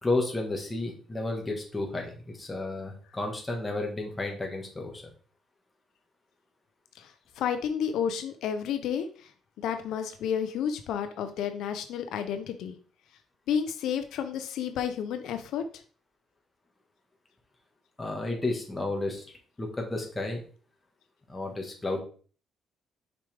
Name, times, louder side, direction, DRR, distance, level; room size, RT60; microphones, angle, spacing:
voice 1, 0.0-5.0 18.0-19.2 19.6-20.4 21.3-22.0, left 2 dB, 10° left, 1 dB, 1.5 m, -32 dB
voice 2, 7.4-9.1 9.6-12.8 13.5-15.6, left 8 dB, 75° left, 8 dB, 0.7 m, -31 dB
6.6 x 5.2 x 3.4 m, 0.42 s
cardioid pair, 165°, 0 cm